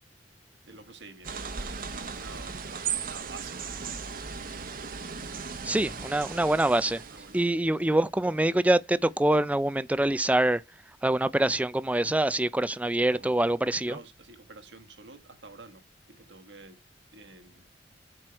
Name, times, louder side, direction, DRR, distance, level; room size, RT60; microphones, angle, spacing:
voice 1, 0.6-4.7 7.1-7.6 13.1-13.5 13.8-16.8 17.1-17.7, right 3 dB, 75° right, 1.5 m, -49 dB
sound 1, 1.2-7.5, right 6 dB, 50° right, 1.0 m, -37 dB
voice 2, 5.6-7.0 7.3-10.6 11.0-14.0, right 1 dB, 10° right, 0.4 m, -25 dB
7.6 x 4.6 x 4.5 m
head